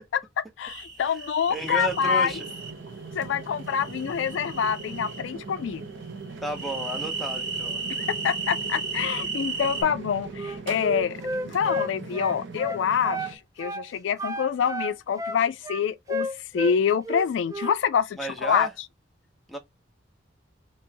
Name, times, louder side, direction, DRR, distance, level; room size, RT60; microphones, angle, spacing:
voice 1, 0.1-2.3 3.1-5.8 8.1-16.3 16.5-18.7, left 7 dB, 80° left, 0.3 m, -26 dB
sound 1, 0.7-2.7 3.7-5.2 6.5-9.8, right 4 dB, 45° right, 1.6 m, -34 dB
voice 2, 1.5-2.5 6.4-7.8 18.2-18.7 19.5-19.6, right 1 dB, ahead, 0.7 m, -32 dB
sound 2, 1.5-13.4, right 4 dB, 80° right, 0.7 m, -40 dB
Wind instrument woodwind instrument, 10.3-13.3 13.6-13.9 14.2-16.8 17.0-17.8, equal, 20° right, 0.4 m, -32 dB
3.0 x 2.9 x 3.3 m
head